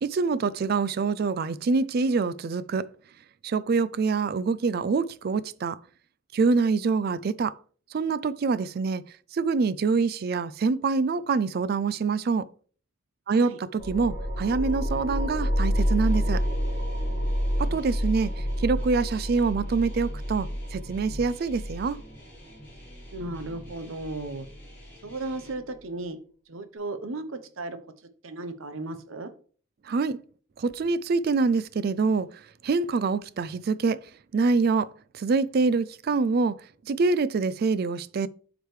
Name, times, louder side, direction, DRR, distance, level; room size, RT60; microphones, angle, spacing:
voice 1, 0.0-2.9 3.4-5.8 6.3-7.6 7.9-9.0 9.3-12.5 13.3-16.4 17.6-22.0 29.8-30.2 30.6-38.3, right 4 dB, 45° right, 0.3 m, -25 dB
sound 1, 13.8-24.8, equal, 45° left, 2.4 m, -29 dB
sound 2, 15.7-25.5, equal, 10° left, 3.0 m, -50 dB
voice 2, 23.1-24.5 25.0-26.2 26.5-27.8 28.2-29.3, right 2 dB, 75° right, 0.8 m, -35 dB
7.8 x 4.9 x 3.2 m
head